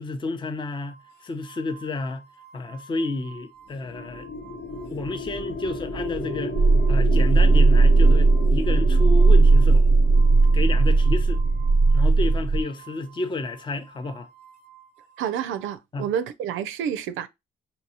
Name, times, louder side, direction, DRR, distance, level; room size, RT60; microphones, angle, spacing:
voice 1, 0.0-2.3 2.5-4.3 4.9-6.6 6.9-9.8 10.5-11.4 11.9-14.3 15.9-16.1, left 2 dB, 25° left, 0.5 m, -30 dB
sound 1, 0.8-15.7, right 6 dB, 55° left, 0.9 m, -50 dB
sound 2, 3.7-12.2, left 2 dB, 85° left, 1.3 m, -34 dB
sound 3, 6.6-12.6, right 3 dB, 25° right, 0.4 m, -17 dB
voice 2, 15.2-17.3, right 9 dB, 85° right, 0.4 m, -29 dB
5.2 x 2.7 x 2.8 m
cardioid pair, 90°, 20 cm